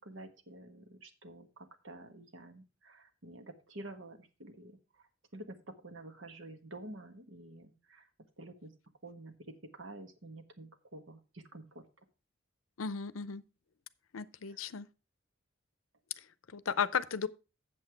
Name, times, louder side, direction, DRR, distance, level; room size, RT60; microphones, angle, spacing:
voice 1, 0.0-5.1 5.3-8.1 8.4-8.7 9.0-11.8 14.5-14.7, right 2 dB, 70° right, 1.4 m, -49 dB
voice 2, 12.8-13.4 14.1-14.9 16.5-17.3, left 6 dB, 90° left, 0.6 m, -34 dB
8.1 x 7.4 x 4.6 m
head